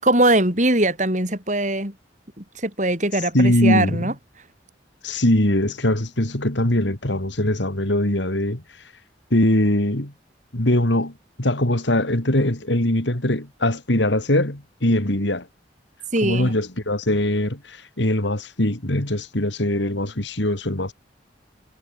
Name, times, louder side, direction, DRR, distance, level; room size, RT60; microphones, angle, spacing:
voice 1, 0.0-1.9 2.4-4.1 16.1-16.5, right 1 dB, 40° right, 7.5 m, -21 dB
voice 2, 3.3-4.1 5.0-8.9 9.3-10.1 10.5-15.5 16.2-20.9, left 1 dB, 75° left, 3.3 m, -22 dB
head